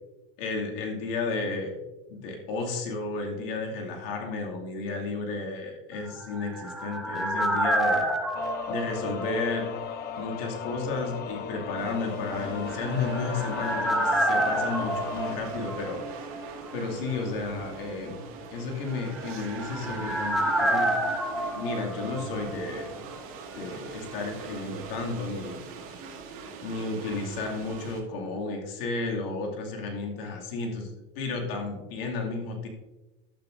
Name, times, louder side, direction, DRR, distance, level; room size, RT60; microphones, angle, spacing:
voice 1, 0.4-1.8 2.1-8.1 8.7-9.7 10.2-16.2 16.7-18.2 18.5-21.0 21.5-23.1 23.5-25.8 26.6-32.7, left 3 dB, 75° left, 0 dB, 2.5 m, -33 dB
sound 1, 6.1-9.9 10.2-10.3 12.7-16.4 16.7-16.8 19.0-22.9 23.1-23.2, right 1 dB, ahead, 0.9 m, -29 dB
sound 2, 8.3-15.4, left 7 dB, 35° left, 0.6 m, -36 dB
sound 3, 11.8-28.0, right 5 dB, 45° right, 2.0 m, -42 dB
11.5 x 8.4 x 2.6 m, 1.1 s
supercardioid pair, 115°, 29 cm